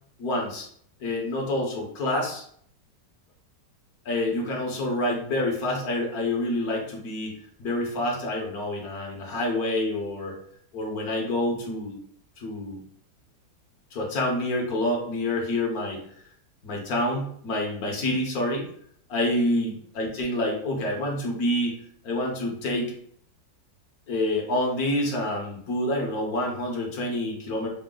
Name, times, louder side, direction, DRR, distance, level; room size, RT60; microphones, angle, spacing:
voice 1, 0.2-0.7 1.0-2.4 4.0-7.3 7.6-10.4 10.7-12.0 12.4-12.8 13.9-16.0 16.6-18.7 19.1-21.8 22.0-22.9 24.1-27.7, left 1 dB, 60° left, 0 dB, 1.3 m, -27 dB
4.9 x 2.0 x 3.7 m, 0.64 s
omnidirectional pair, 2.0 m